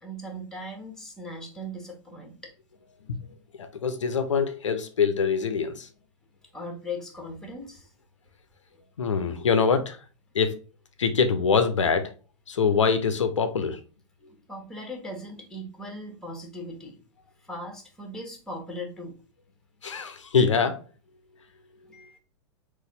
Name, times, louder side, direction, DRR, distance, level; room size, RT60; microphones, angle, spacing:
voice 1, 0.0-2.5 6.5-7.9 14.2-17.0 17.4-19.2 21.9-22.2, left 1 dB, 5° left, 1.2 m, -39 dB
voice 2, 3.6-5.9 9.0-10.0 10.3-10.5 11.0-12.1 12.5-13.8 19.8-20.8, left 5 dB, 75° left, 0.6 m, -24 dB
4.0 x 2.5 x 3.8 m
figure-of-eight pair, 100°, 16 cm